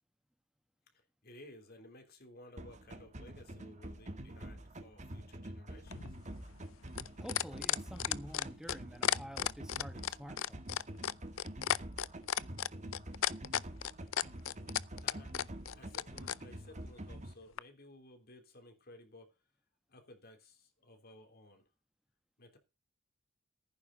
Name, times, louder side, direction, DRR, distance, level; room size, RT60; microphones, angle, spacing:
voice 1, 0.9-6.2 14.9-19.4 19.9-21.6 22.4-22.6, left 1 dB, 50° left, 3.4 m, -57 dB
sound 1, 2.6-17.3, right 1 dB, 35° right, 1.8 m, -47 dB
sound 2, 5.9-16.4 17.6-17.7, left 10 dB, 85° left, 0.5 m, -34 dB
voice 2, 7.2-10.8, equal, 5° right, 1.1 m, -49 dB
15.0 x 9.6 x 4.0 m
head